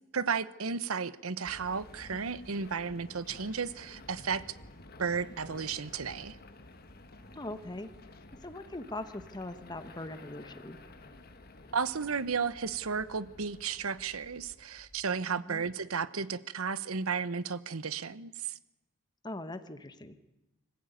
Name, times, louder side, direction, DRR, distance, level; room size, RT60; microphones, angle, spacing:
voice 1, 0.1-4.5 5.0-6.4 11.7-18.6, right 5 dB, 85° right, 15 dB, 1.0 m, -33 dB
sound 1, 1.4-15.1, left 2 dB, 45° left, 1.5 m, -52 dB
voice 2, 7.3-7.9 8.4-10.8 15.3-15.6 19.2-20.2, left 2 dB, 20° left, 10 dB, 1.2 m, -41 dB
25.0 x 15.0 x 9.3 m, 1.0 s
head